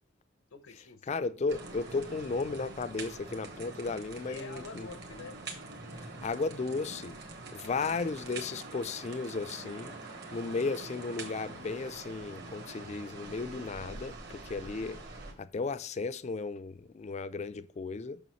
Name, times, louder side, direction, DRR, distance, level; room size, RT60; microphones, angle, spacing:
voice 1, 0.5-1.1 4.2-5.4 8.2-8.4, left 4 dB, 85° left, 0.7 m, -47 dB
voice 2, 1.1-4.9 6.2-7.2 7.5-9.9 10.3-15.0 15.4-18.2, left 4 dB, 35° left, 0.4 m, -35 dB
sound 1, 1.5-15.3, right 3 dB, 50° right, 1.6 m, -45 dB
6.9 x 6.2 x 3.1 m
head